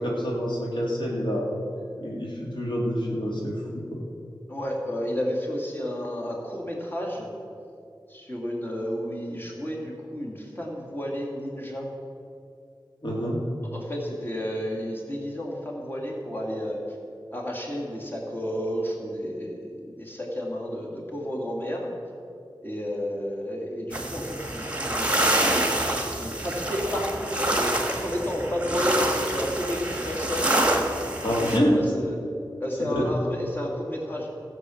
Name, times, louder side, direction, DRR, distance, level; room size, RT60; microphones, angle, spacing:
voice 1, 0.0-1.5 2.0-4.0 13.0-13.4 31.2-31.7 32.8-33.1, equal, 70° left, -3 dB, 2.4 m, -27 dB
voice 2, 4.5-7.3 8.1-11.8 13.7-16.8 17.3-21.9 22.6-27.7 28.0-30.6 31.4-32.2 32.6-34.3, equal, 25° left, -2 dB, 2.4 m, -31 dB
sound 1, 23.9-31.6, right 1 dB, 15° right, 1.6 m, -26 dB
14.0 x 7.8 x 6.4 m, 2.6 s
wide cardioid pair, 50°, 8 cm